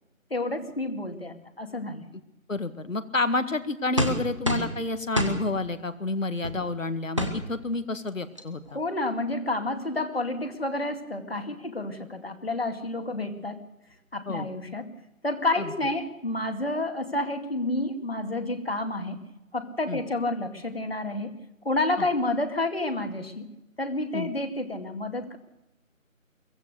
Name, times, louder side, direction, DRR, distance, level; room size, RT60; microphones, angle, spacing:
voice 1, 0.3-2.0 8.7-13.6 14.1-14.9 15.2-19.2 19.5-21.3 21.6-23.5 23.8-25.4, left 2 dB, 45° left, 7 dB, 2.3 m, -29 dB
voice 2, 2.5-8.8 14.3-14.5 15.6-15.7 19.9-20.0 22.0-22.1 24.1-24.3, left 2 dB, 65° left, 11 dB, 1.9 m, -29 dB
sound 1, 4.0-4.8 5.2-5.4 6.4-6.6 7.2-7.4 8.1-8.2 8.4-8.7, equal, 20° right, 1.4 m, -26 dB
23.5 x 17.0 x 6.7 m, 0.94 s
figure-of-eight pair, 175°, 42 cm